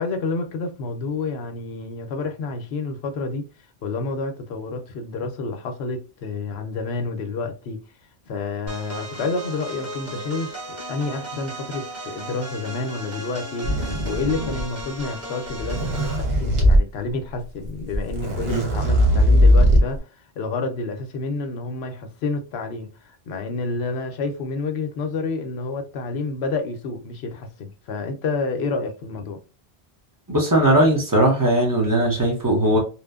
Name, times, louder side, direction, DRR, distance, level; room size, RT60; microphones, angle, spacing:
voice 1, 0.0-3.5 3.8-7.8 8.3-20.1 20.4-29.4, left 3 dB, 80° left, 0.8 m, -29 dB
sound 1, 8.7-16.3, right 1 dB, 45° right, 1.4 m, -36 dB
sound 2, 13.6-14.8 15.5-16.8 17.7-17.8 17.9-20.0, equal, 75° right, 1.2 m, -18 dB
voice 2, 30.3-32.8, right 1 dB, 20° right, 0.8 m, -19 dB
2.8 x 2.1 x 2.3 m
omnidirectional pair, 1.1 m